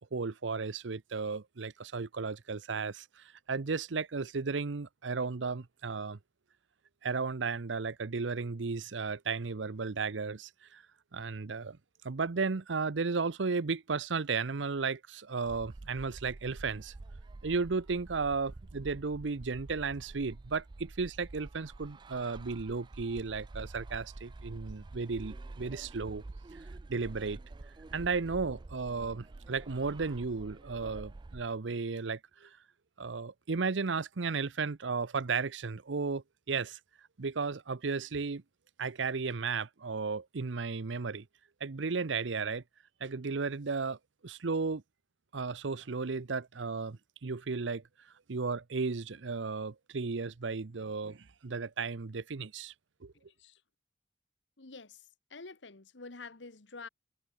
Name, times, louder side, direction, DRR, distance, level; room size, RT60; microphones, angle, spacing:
voice 1, 0.1-6.2 7.0-10.8 11.1-11.8 12.0-16.9 17.4-26.2 26.9-27.4 27.9-32.6 33.0-36.8 37.2-38.4 38.8-41.3 41.6-42.6 43.0-44.0 44.2-44.8 45.3-47.8 48.3-52.7 53.0-53.1, right 4 dB, 90° right, 0.8 m, -34 dB
sound 1, 15.5-31.5, right 2 dB, 25° right, 0.3 m, -48 dB
voice 2, 53.1-53.6 54.6-56.9, left 4 dB, 80° left, 1.5 m, -48 dB
head